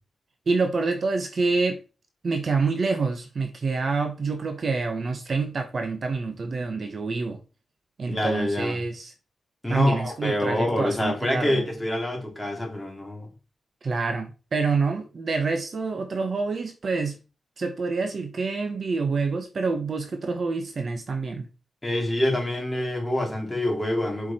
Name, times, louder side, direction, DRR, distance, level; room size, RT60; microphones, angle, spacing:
voice 1, 0.5-1.8 2.2-7.4 8.0-9.1 9.7-11.6 13.8-17.2 17.6-21.5, right 4 dB, 50° right, 1.0 m, -27 dB
voice 2, 8.1-8.8 9.6-13.3 21.8-24.3, left 1 dB, 10° left, 3.1 m, -26 dB
7.6 x 4.9 x 4.3 m
wide cardioid pair, 125°, 0 cm